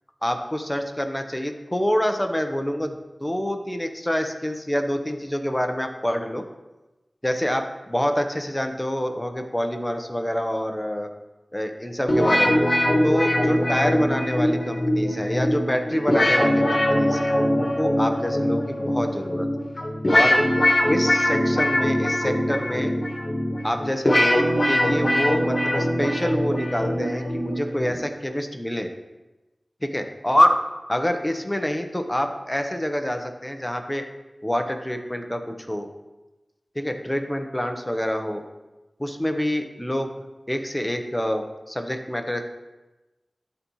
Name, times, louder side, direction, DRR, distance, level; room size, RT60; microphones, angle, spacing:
voice 1, 0.2-6.4 7.2-11.1 11.5-12.6 13.0-19.5 20.1-20.4 20.9-22.9 23.6-28.9 29.8-30.6 30.9-34.1 34.4-35.9 36.7-38.4 39.0-40.1 40.5-42.4, equal, 15° left, 5 dB, 0.8 m, -26 dB
sound 1, 12.1-28.0, left 1 dB, 50° left, 1.7 m, -22 dB
12.5 x 4.1 x 3.1 m, 1.1 s
wide cardioid pair, 45°, 0 cm